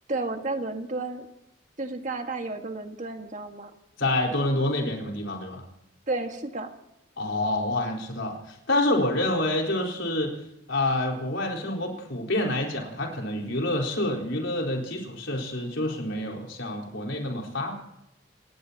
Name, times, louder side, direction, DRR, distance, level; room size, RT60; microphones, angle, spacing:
voice 1, 0.1-1.3 1.8-3.7 6.1-6.7, right 2 dB, 35° right, 5 dB, 1.6 m, -32 dB
voice 2, 4.0-5.6 7.2-10.3 10.7-17.8, left 1 dB, 65° left, 0 dB, 4.4 m, -27 dB
27.0 x 18.5 x 2.9 m, 0.87 s
head